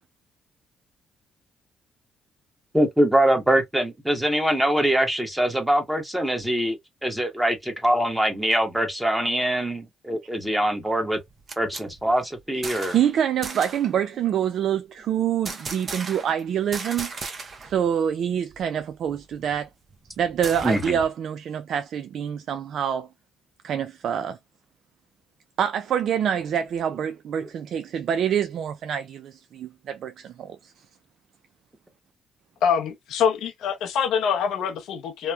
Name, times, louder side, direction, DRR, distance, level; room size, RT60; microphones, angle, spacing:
voice 1, 2.7-11.2 11.6-13.0 20.6-21.0, right 1 dB, 5° right, 1.0 m, -23 dB
sound 1, 11.2-13.1 13.4-13.9 15.4-16.4 16.7-17.8 18.1-18.2 18.5-21.1, right 4 dB, 40° right, 0.7 m, -37 dB
voice 2, 12.9-17.1 17.6-19.7 20.2-23.1 23.6-24.4 25.6-30.7, right 9 dB, 65° right, 0.3 m, -26 dB
voice 3, 32.6-35.3, left 7 dB, 80° left, 0.6 m, -24 dB
2.9 x 2.1 x 2.2 m
cardioid pair, 90°, 0 cm